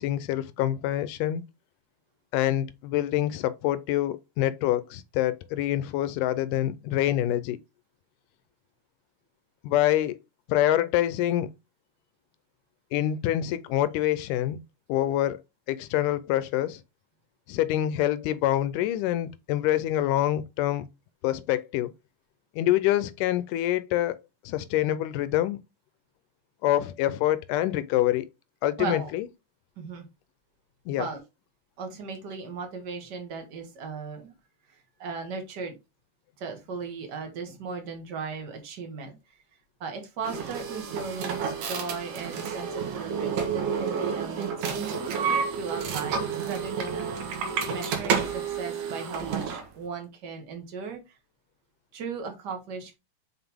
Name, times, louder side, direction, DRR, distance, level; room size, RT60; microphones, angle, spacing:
voice 1, 0.0-1.4 2.3-7.6 9.6-10.2 10.5-11.5 12.9-14.6 14.9-15.4 15.7-16.8 17.5-20.9 21.2-21.9 22.6-24.2 24.5-25.6 26.6-28.3 28.6-29.3 30.9-31.1, left 13 dB, 80° left, 2.0 m, -26 dB
voice 2, 28.8-29.1 29.8-30.1 31.0-31.2 31.8-34.3 34.7-35.7 36.4-39.4 39.8-45.2 45.5-51.2 51.9-53.0, right 5 dB, 40° right, 1.7 m, -37 dB
sound 1, 40.2-49.7, right 6 dB, 70° right, 2.8 m, -30 dB
5.9 x 5.5 x 3.5 m
omnidirectional pair, 3.8 m